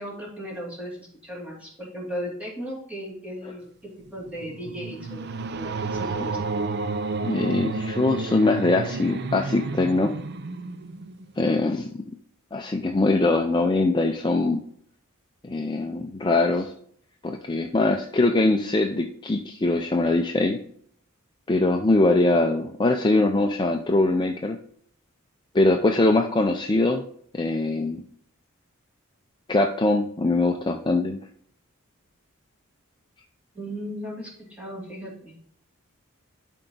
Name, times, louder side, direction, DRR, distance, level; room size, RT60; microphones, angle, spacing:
voice 1, 0.0-5.2 5.5-6.4 33.5-35.3, equal, 5° right, -4 dB, 2.7 m, -36 dB
sound 1, 4.1-11.4, right 3 dB, 50° right, 0.5 m, -31 dB
voice 2, 7.2-10.1 11.4-11.9 12.5-14.6 15.4-16.7 17.2-20.6 21.5-24.6 25.5-27.0 27.3-28.0 29.5-31.2, left 2 dB, 20° left, 3 dB, 0.5 m, -22 dB
11.5 x 4.6 x 3.9 m, 0.62 s
head